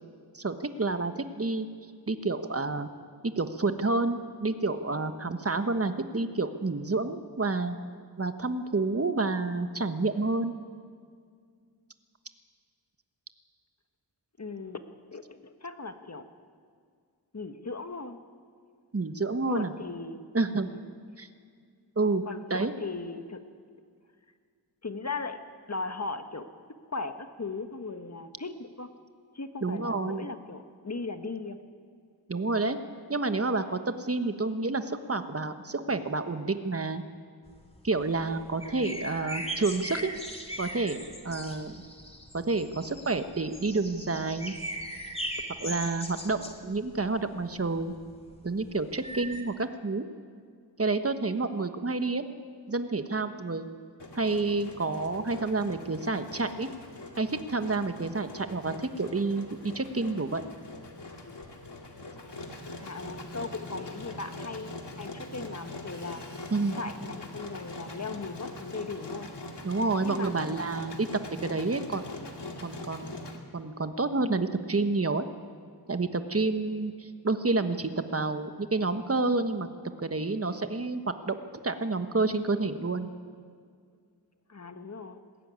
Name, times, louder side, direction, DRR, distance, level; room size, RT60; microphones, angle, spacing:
voice 1, 0.3-1.7 2.1-2.9 3.2-7.8 8.2-10.5 18.9-19.7 20.3-20.7 21.2-21.3 22.0-22.2 22.5-22.7 29.6-30.3 32.3-32.8 33.1-37.0 37.8-40.1 40.6-41.8 42.3-44.5 45.6-47.9 48.4-50.0 50.8-52.3 52.7-53.7 54.1-56.7 57.2-60.4 66.5-66.8 69.6-71.1 71.4-72.0 72.6-73.2 73.5-75.2 75.9-79.7 80.0-81.3 81.6-83.1, right 3 dB, 35° right, 9 dB, 1.2 m, -29 dB
voice 2, 14.4-16.2 17.3-18.2 19.5-20.2 20.6-20.9 22.2-23.4 24.8-25.4 25.7-26.5 26.9-28.9 29.3-31.6 62.8-66.2 66.7-69.3 70.0-70.5 84.5-85.2, left 3 dB, 40° left, 8 dB, 1.4 m, -38 dB
sound 1, 37.5-49.4, equal, 15° left, 2.4 m, -40 dB
Engine, 54.0-73.4, left 2 dB, 85° left, 2.2 m, -43 dB
20.5 x 15.0 x 9.6 m, 2.1 s
wide cardioid pair, 65°, 41 cm